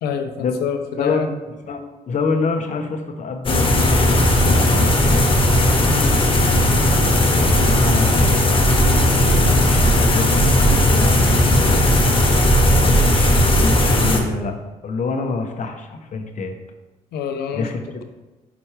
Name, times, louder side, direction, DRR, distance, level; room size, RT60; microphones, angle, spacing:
voice 1, 0.0-1.3 5.9-6.1 17.1-17.7, left 7 dB, 85° left, 6 dB, 0.8 m, -26 dB
voice 2, 1.0-1.3 1.6-5.3 7.0-8.6 9.6-12.0 13.0-14.5 14.8-16.5 17.5-18.0, left 4 dB, 50° left, 5 dB, 1.0 m, -27 dB
sound 1, 3.4-14.2, left 1 dB, 35° left, 1.3 m, -16 dB
6.0 x 4.4 x 4.9 m, 1.1 s
supercardioid pair, 75°, 16 cm